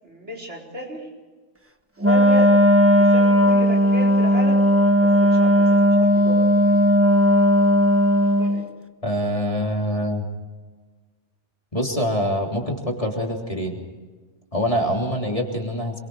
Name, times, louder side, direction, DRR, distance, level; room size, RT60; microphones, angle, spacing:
voice 1, 0.0-1.1 2.0-2.5 3.0-4.6 5.0-6.8 8.2-8.7 15.5-15.6, equal, 80° right, 0 dB, 4.9 m, -34 dB
Wind instrument woodwind instrument, 2.0-8.6, equal, 10° right, 1.1 m, -16 dB
voice 2, 9.0-10.3 11.7-13.8 14.5-16.0, equal, 30° left, 0 dB, 3.4 m, -25 dB
27.5 x 23.0 x 4.8 m, 1.3 s
omnidirectional pair, 1.2 m